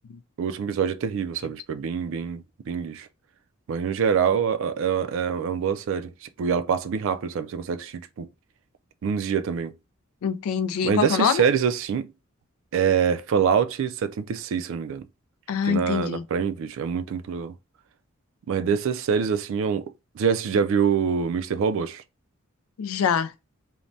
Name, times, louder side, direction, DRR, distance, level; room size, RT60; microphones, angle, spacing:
voice 1, 0.4-3.1 3.7-6.1 6.4-8.3 9.0-9.7 10.8-12.1 12.7-15.0 15.7-17.5 18.5-22.0, right 6 dB, 65° right, 0.3 m, -25 dB
voice 2, 10.2-11.4 15.5-16.2 22.8-23.3, left 7 dB, 90° left, 0.3 m, -24 dB
3.1 x 2.1 x 2.6 m
head